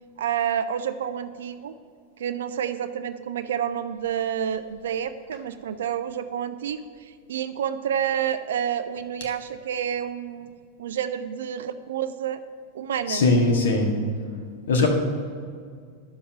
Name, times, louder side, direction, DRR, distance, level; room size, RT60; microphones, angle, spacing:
voice 1, 0.2-1.7 2.2-10.5 10.8-12.4 12.7-13.3 14.7-14.9, right 9 dB, 60° right, 11 dB, 0.5 m, -29 dB
voice 2, 13.1-13.9 14.7-14.9, left 3 dB, 60° left, 1 dB, 1.7 m, -20 dB
10.5 x 7.2 x 5.7 m, 2.1 s
figure-of-eight pair, 90°, 0 cm